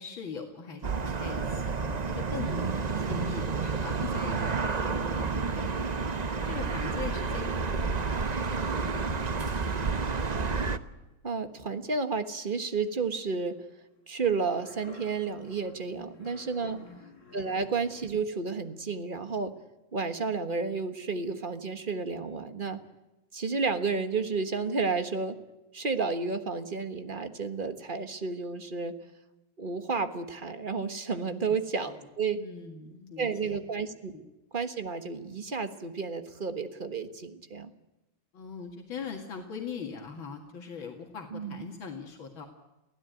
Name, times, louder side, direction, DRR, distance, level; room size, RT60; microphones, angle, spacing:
voice 1, 0.0-9.0 9.4-9.7 15.9-16.2 16.6-17.0 31.3-32.1 32.3-33.5 34.1-34.2 38.3-42.5, left 5 dB, 80° left, 2 dB, 2.7 m, -42 dB
sound 1, 0.8-10.8, right 4 dB, 55° right, 0.4 m, -30 dB
sound 2, 4.5-12.2 12.6-18.1 18.6-18.7, left 4 dB, 40° left, 2.5 m, -54 dB
voice 2, 11.2-13.6 14.1-16.8 17.3-19.5 19.9-22.8 23.3-25.4 25.7-28.9 29.6-32.4 33.2-34.1 34.5-37.7 41.3-41.7, right 4 dB, 30° right, 9 dB, 1.4 m, -31 dB
24.0 x 16.0 x 9.1 m, 1.0 s
omnidirectional pair, 2.2 m